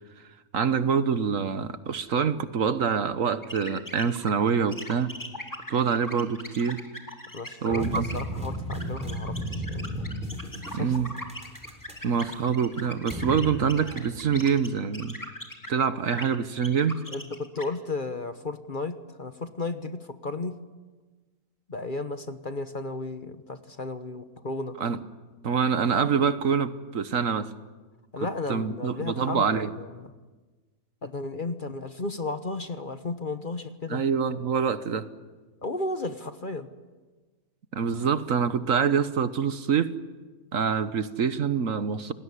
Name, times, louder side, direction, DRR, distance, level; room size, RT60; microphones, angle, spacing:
voice 1, 0.5-5.1 5.7-6.8 7.6-8.1 10.7-11.1 12.0-15.2 15.7-17.0 24.8-25.0 25.4-27.5 28.5-29.7 33.9-35.1 37.7-39.9 40.5-42.1, right 6 dB, 60° right, 12 dB, 1.4 m, -25 dB
sound 1, 3.4-15.8 16.1-17.6, left 1 dB, 10° left, 2.7 m, -40 dB
voice 2, 7.3-10.1 10.7-11.0 17.1-20.6 21.7-24.8 28.1-30.1 31.0-34.0 35.6-36.7, left 3 dB, 35° left, 9 dB, 1.2 m, -34 dB
sound 2, 7.7-14.6, equal, 5° right, 3.4 m, -35 dB
28.5 x 19.5 x 9.9 m, 1.3 s
omnidirectional pair, 1.6 m